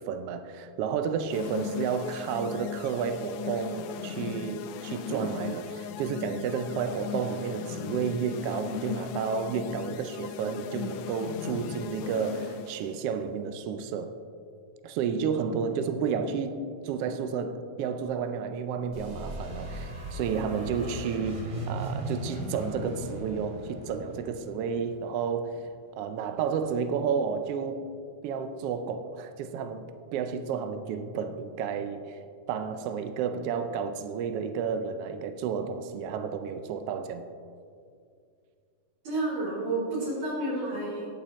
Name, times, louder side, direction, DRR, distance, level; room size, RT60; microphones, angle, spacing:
voice 1, 0.0-14.1 14.8-21.4 21.7-25.7 26.0-27.8 28.2-29.9 30.1-32.2 32.5-37.3, right 6 dB, 80° right, 8 dB, 1.3 m, -31 dB
sound 1, 1.3-12.9, left 8 dB, 85° left, 2.0 m, -38 dB
sound 2, 18.9-25.5, right 1 dB, 40° right, 3.0 m, -37 dB
voice 2, 39.0-41.1, right 2 dB, 65° right, -5 dB, 4.4 m, -30 dB
18.5 x 8.7 x 3.1 m, 2.3 s
omnidirectional pair, 3.4 m